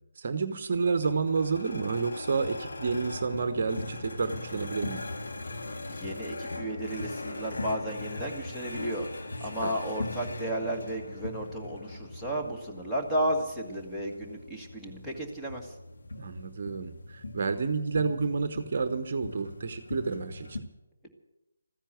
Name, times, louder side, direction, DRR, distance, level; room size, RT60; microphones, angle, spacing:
voice 1, 0.2-5.0 9.6-9.7 16.2-20.6, right 4 dB, 40° right, 10 dB, 1.0 m, -30 dB
sound 1, 0.7-20.6, left 2 dB, 55° left, 1.7 m, -40 dB
voice 2, 5.9-9.1 9.4-15.7, right 1 dB, 5° left, -2 dB, 1.7 m, -33 dB
14.5 x 10.0 x 9.3 m, 0.97 s
figure-of-eight pair, 150°, 0 cm